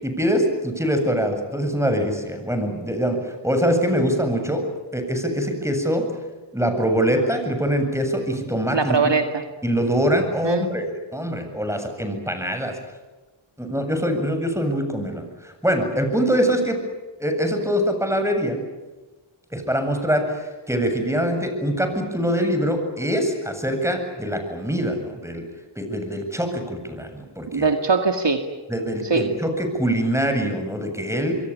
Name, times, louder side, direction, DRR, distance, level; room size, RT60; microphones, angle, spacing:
voice 1, 0.0-6.1 6.5-9.1 9.6-12.8 13.6-16.8 17.2-18.6 19.5-25.5 25.8-27.7 28.7-31.4, equal, 5° right, 6 dB, 7.7 m, -24 dB
voice 2, 8.7-9.4 10.4-10.7 27.5-28.4 29.0-29.2, right 4 dB, 55° right, 6 dB, 2.2 m, -21 dB
27.0 x 23.0 x 8.9 m, 1.2 s
cardioid pair, 40°, 50 cm